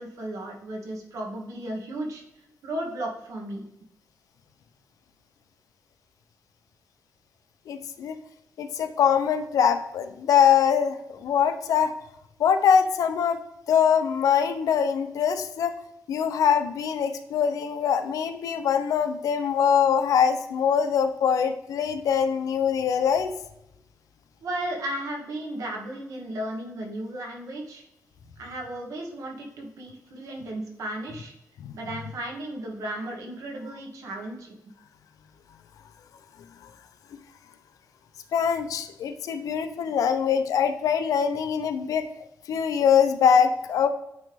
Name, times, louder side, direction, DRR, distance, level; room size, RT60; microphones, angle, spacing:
voice 1, 0.0-2.2 2.6-3.6 24.4-27.8 28.4-31.3 31.7-34.6, right 1 dB, 75° right, 0 dB, 1.4 m, -34 dB
voice 2, 7.7-8.2 8.6-11.9 12.4-13.4 13.7-15.7 16.1-23.3 31.6-31.7 38.3-42.1 42.5-43.9, left 7 dB, 85° left, 9 dB, 0.5 m, -23 dB
9.0 x 3.1 x 3.4 m, 0.85 s
wide cardioid pair, 150°, 6 cm